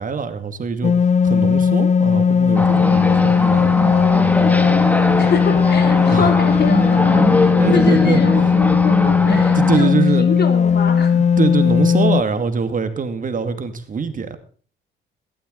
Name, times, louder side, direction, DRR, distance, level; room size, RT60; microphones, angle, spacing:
voice 1, 0.0-3.9 6.1-6.3 7.6-8.2 9.2-10.3 11.1-14.4, right 5 dB, 40° right, 8 dB, 2.4 m, -23 dB
sound 1, 0.8-12.2, left 6 dB, 35° left, 0.6 m, -16 dB
sound 2, 2.6-9.8, left 1 dB, 10° left, 2.1 m, -21 dB
voice 2, 5.2-11.2, left 6 dB, 55° left, 6 dB, 3.5 m, -25 dB
16.0 x 12.5 x 4.0 m, 0.42 s
cardioid pair, 90°, 20 cm